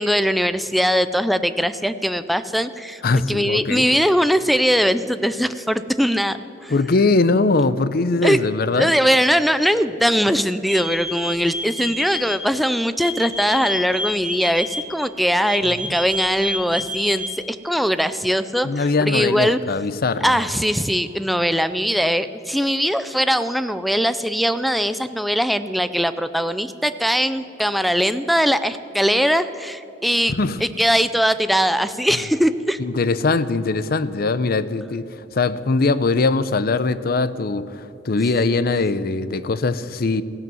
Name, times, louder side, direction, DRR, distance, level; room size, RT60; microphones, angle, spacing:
voice 1, 0.0-3.0 3.3-6.4 6.6-6.7 8.2-8.4 8.8-19.6 20.2-30.3 30.6-32.8, equal, ahead, 13 dB, 0.4 m, -21 dB
voice 2, 3.0-3.8 6.7-8.9 15.8-15.9 18.6-20.4 30.3-30.6 32.8-35.1 35.3-40.2, left 3 dB, 55° left, 15 dB, 0.6 m, -21 dB
sound 1, 10.7-12.3 13.0-14.8 15.5-17.3, equal, 30° left, 3.2 m, -28 dB
15.5 x 11.0 x 7.7 m, 3.0 s
head